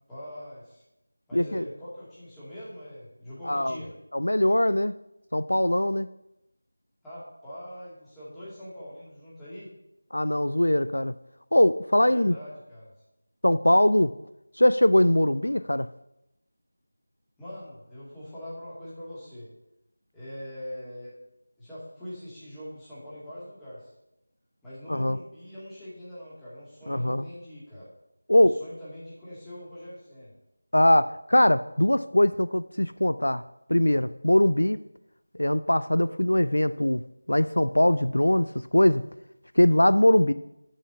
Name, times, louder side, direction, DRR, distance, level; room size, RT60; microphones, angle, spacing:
voice 1, 0.1-0.8 1.3-3.9 7.0-9.7 12.1-12.9 17.4-19.5 20.1-21.1 21.6-23.9 24.6-27.9 28.4-30.3, equal, 5° left, -11 dB, 2.1 m, -42 dB
voice 2, 1.3-1.7 3.4-3.8 4.1-4.9 5.3-6.1 10.1-11.1 11.5-12.3 13.4-14.1 14.6-15.9 24.9-25.2 26.9-27.3 28.3-28.6 30.7-33.4 33.7-34.8 35.4-37.0 37.3-38.5 38.7-39.0 39.6-40.3, left 1 dB, 70° left, 14 dB, 0.3 m, -21 dB
7.2 x 5.8 x 6.8 m, 0.87 s
figure-of-eight pair, 165°, 0 cm